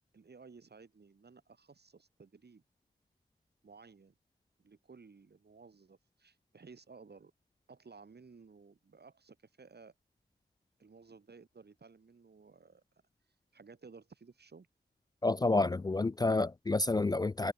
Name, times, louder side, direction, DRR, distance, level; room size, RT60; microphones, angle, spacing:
voice 1, 0.1-2.6 3.6-4.1 4.6-7.3 7.7-9.9 10.8-12.8 13.5-14.7, right 4 dB, 70° right, 5.4 m, -56 dB
voice 2, 15.2-17.5, left 2 dB, 20° left, 0.3 m, -29 dB
wide cardioid pair, 65°, 18 cm